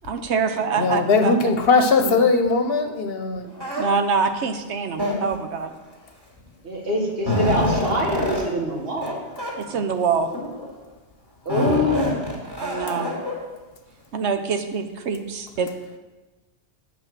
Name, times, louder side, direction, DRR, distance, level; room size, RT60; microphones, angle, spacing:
voice 1, 0.1-1.3 2.0-2.2 3.8-5.7 9.6-10.3 12.6-13.1 14.1-15.7, right 5 dB, 75° right, 7 dB, 1.1 m, -25 dB
voice 2, 0.8-3.5, left 4 dB, 60° left, 7 dB, 1.0 m, -19 dB
sound 1, 3.6-3.8 4.9-5.5 6.5-6.6 6.9-8.4 9.0-9.1 9.4-9.5 10.2-10.7 11.5-13.3, left 1 dB, 20° right, 2.5 m, -26 dB
voice 3, 6.6-9.8 11.5-12.2, left 1 dB, 60° right, 0 dB, 1.9 m, -25 dB
9.4 x 5.4 x 7.4 m, 1.2 s
omnidirectional pair, 1.2 m